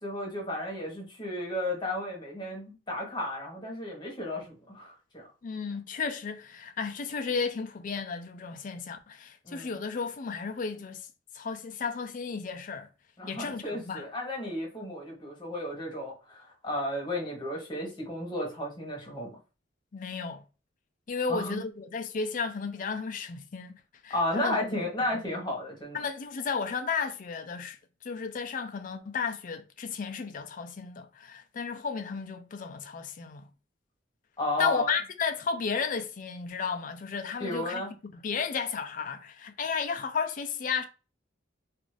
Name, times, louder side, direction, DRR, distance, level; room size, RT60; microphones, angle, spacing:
voice 1, 0.0-5.2 9.4-9.8 13.2-19.4 21.3-21.6 24.1-26.0 34.4-34.9 37.4-37.9, left 1 dB, 25° left, 1.1 m, -33 dB
voice 2, 5.4-11.1 11.3-12.9 13.3-14.0 19.9-20.4 21.1-23.7 24.0-24.6 25.1-25.2 25.9-27.8 28.0-33.5 34.6-37.8 38.1-40.9, left 5 dB, 45° left, 0.4 m, -33 dB
2.5 x 2.5 x 3.1 m
head